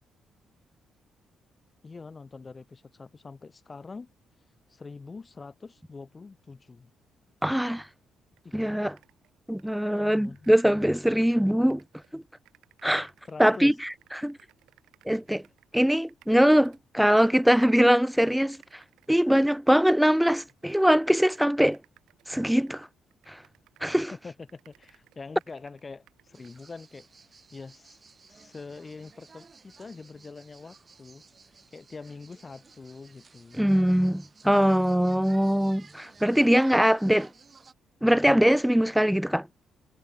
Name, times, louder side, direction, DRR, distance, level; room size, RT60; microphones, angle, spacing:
voice 1, 1.8-4.1 4.7-6.9 8.4-8.6 9.9-10.5 13.3-13.7 24.2-27.1 27.5-28.0 28.3-31.2 31.7-33.7, left 4 dB, 30° left, 4.5 m, -44 dB
voice 2, 7.4-7.9 8.5-8.9 9.5-11.8 12.1-12.2 12.8-13.1 13.4-13.7 14.1-14.4 15.1-15.4 15.7-18.8 19.1-21.8 22.3-22.9 23.3-23.4 23.8-24.1 33.6-37.3 38.0-39.5, equal, ahead, 0.4 m, -22 dB
sound 1, 8.4-8.5 8.7-11.4 11.7-17.2 17.6-17.9 18.4-24.1 24.4-26.6, right 14 dB, 85° right, 3.3 m, -62 dB
sound 2, 26.3-37.7, right 4 dB, 35° right, 1.6 m, -55 dB
cardioid pair, 90°, 0 cm